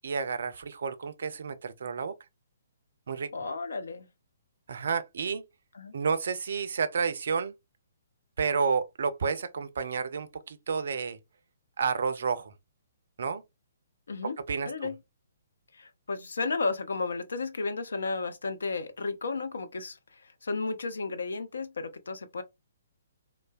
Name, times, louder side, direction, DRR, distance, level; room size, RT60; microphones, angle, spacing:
voice 1, 0.0-2.1 3.1-3.3 4.7-5.4 5.9-7.5 8.4-11.2 11.8-12.5 13.2-13.4 14.2-14.9, right 5 dB, 55° right, 0.4 m, -30 dB
voice 2, 3.3-4.1 5.7-5.9 14.1-14.4 14.6-15.0 15.7-22.4, left 3 dB, 60° left, 0.5 m, -33 dB
3.2 x 2.1 x 2.4 m
figure-of-eight pair, 125°, 0 cm